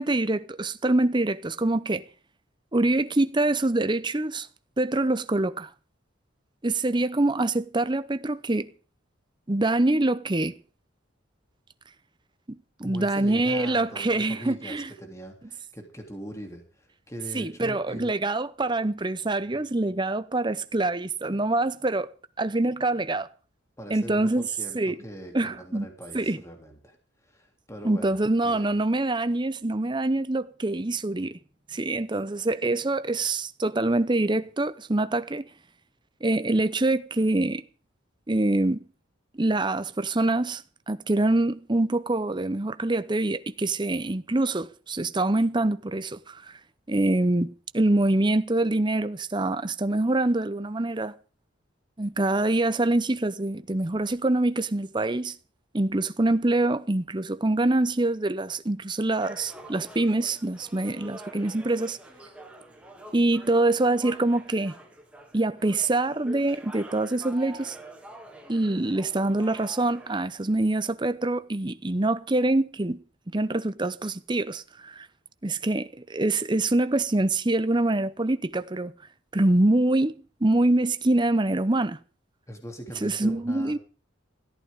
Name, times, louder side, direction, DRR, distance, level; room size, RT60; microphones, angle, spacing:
voice 1, 0.0-2.0 2.7-4.5 4.8-5.7 6.6-8.7 9.5-10.6 12.5-14.9 17.3-23.3 23.9-24.4 24.7-25.0 25.3-25.9 26.1-26.4 27.8-31.4 31.7-35.5 36.2-37.6 38.3-38.8 39.4-46.5 46.9-51.1 52.0-55.4 55.7-62.0 63.1-64.7 65.3-67.8 68.5-75.1 75.4-78.9 79.3-80.1 80.4-82.0 83.0-83.8, right 2 dB, 20° right, 0.7 m, -25 dB
voice 2, 12.8-18.1 23.8-27.0 27.2-28.7 82.5-83.8, equal, 15° left, 2.9 m, -41 dB
sound 1, 59.1-70.2, right 2 dB, 5° right, 2.5 m, -46 dB
20.5 x 14.0 x 3.7 m
head